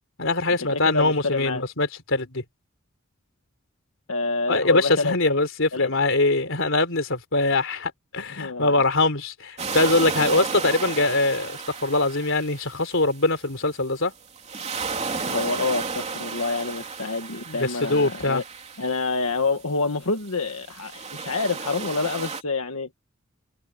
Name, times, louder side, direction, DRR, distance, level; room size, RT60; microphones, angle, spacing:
voice 1, 0.2-2.4 4.5-14.1 17.5-18.4, left 2 dB, 65° left, 4.0 m, -23 dB
voice 2, 0.7-1.6 4.1-5.2 5.7-5.9 8.3-8.7 15.3-18.4 18.8-22.9, left 3 dB, 85° left, 1.6 m, -27 dB
sound 1, 9.6-13.3 14.4-19.4 20.2-22.4, right 4 dB, 30° right, 3.2 m, -33 dB
head